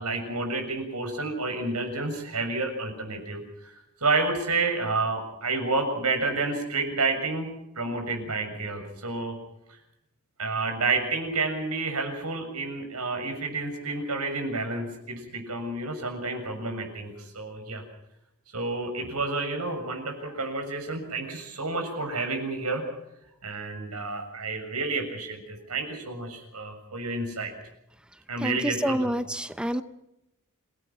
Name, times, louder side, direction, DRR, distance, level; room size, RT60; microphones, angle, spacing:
voice 1, 0.0-3.7 4.0-7.5 7.7-9.3 10.4-17.8 18.5-22.8 23.4-27.5 28.3-29.1, right 3 dB, 85° right, 5 dB, 6.8 m, -30 dB
voice 2, 28.4-29.8, equal, 5° right, 11 dB, 0.7 m, -28 dB
27.5 x 18.0 x 6.2 m, 0.86 s
head